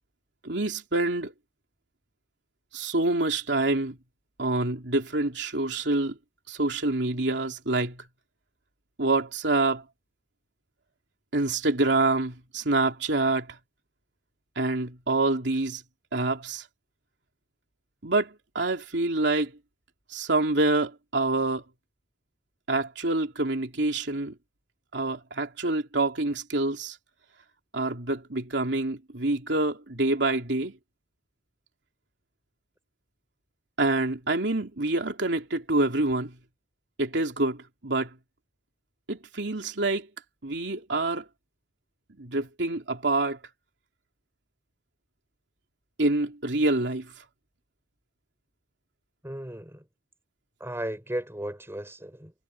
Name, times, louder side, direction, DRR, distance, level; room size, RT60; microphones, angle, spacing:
voice 1, 0.4-1.3 2.7-4.0 4.4-6.2 6.5-8.0 9.0-9.8 11.3-13.6 14.6-15.8 16.1-16.7 18.0-19.5 20.1-21.6 22.7-24.3 24.9-27.0 27.7-30.7 33.8-36.3 37.0-38.1 39.1-40.1 40.4-41.3 42.2-43.4 46.0-47.1, right 2 dB, 80° right, 3.0 m, -26 dB
voice 2, 49.2-49.8 50.6-52.3, right 1 dB, 15° right, 5.6 m, -35 dB
head